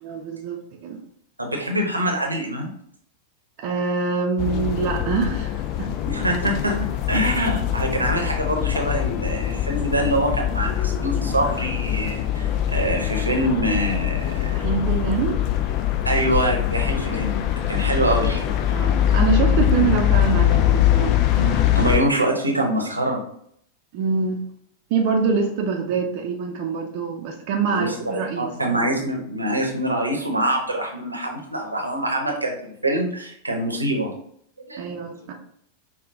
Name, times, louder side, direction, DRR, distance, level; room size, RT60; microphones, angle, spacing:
voice 1, 0.0-1.0 3.6-5.9 14.5-15.4 18.7-21.2 23.9-24.4 24.9-28.5 34.8-35.3, right 5 dB, 45° right, 2 dB, 0.6 m, -25 dB
voice 2, 1.4-2.7 6.0-14.5 16.0-17.4 17.7-18.5 21.3-23.2 27.7-34.1 34.6-34.8 35.2-35.3, right 1 dB, 85° right, 1 dB, 0.9 m, -24 dB
sound 1, 4.4-22.0, left 11 dB, 40° left, 0.4 m, -23 dB
5.6 x 2.3 x 3.5 m, 0.67 s
figure-of-eight pair, 90°, 0 cm